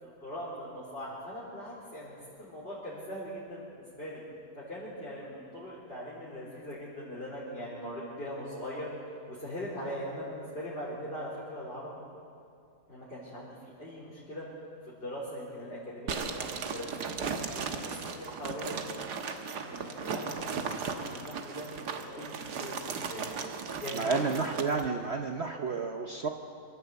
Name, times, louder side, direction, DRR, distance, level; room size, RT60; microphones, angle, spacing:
voice 1, 0.0-4.2 4.6-12.0 12.9-14.5 14.9-18.8 19.2-23.3 23.5-24.2, equal, 35° left, -8 dB, 4.3 m, -41 dB
sound 1, 16.1-24.9, right 5 dB, 90° right, 1.8 m, -36 dB
voice 2, 23.9-26.3, right 4 dB, 50° right, 4 dB, 1.0 m, -31 dB
25.0 x 13.0 x 8.2 m, 2.4 s
omnidirectional pair, 1.7 m